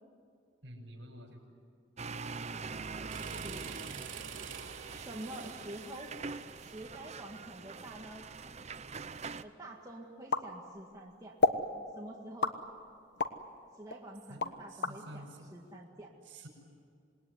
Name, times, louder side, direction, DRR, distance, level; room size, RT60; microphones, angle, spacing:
voice 1, 0.6-1.4 14.3-14.4 14.7-15.5 16.2-16.5, right 1 dB, 70° right, 2 dB, 6.4 m, -49 dB
sound 1, 2.0-9.4, right 4 dB, 35° right, 0.7 m, -43 dB
voice 2, 2.9-3.7 4.9-6.1 6.6-8.5 9.4-11.4 11.7-12.6 13.7-16.1, right 1 dB, 20° right, -2 dB, 2.1 m, -47 dB
sound 2, 3.1-8.0, right 6 dB, 90° right, 3.0 m, -47 dB
sound 3, 10.3-11.0 11.4-11.7 12.4-13.4 13.9-15.0, left 3 dB, 60° left, 1.2 m, -30 dB
27.0 x 20.0 x 9.7 m, 2.4 s
head